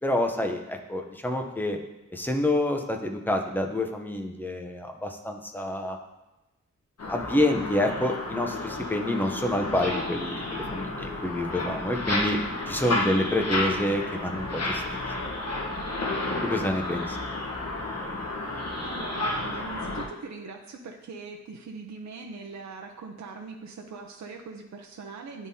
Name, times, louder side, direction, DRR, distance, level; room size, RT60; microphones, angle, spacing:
voice 1, 0.0-1.8 2.1-6.0 7.1-12.4 12.7-14.8 16.4-17.2, left 1 dB, 5° left, 3 dB, 0.6 m, -27 dB
sound 1, 7.0-20.0, left 2 dB, 60° left, 1.1 m, -31 dB
voice 2, 18.8-25.5, right 4 dB, 70° right, 2 dB, 0.6 m, -41 dB
10.0 x 3.6 x 2.7 m, 1.0 s
wide cardioid pair, 140°, 29 cm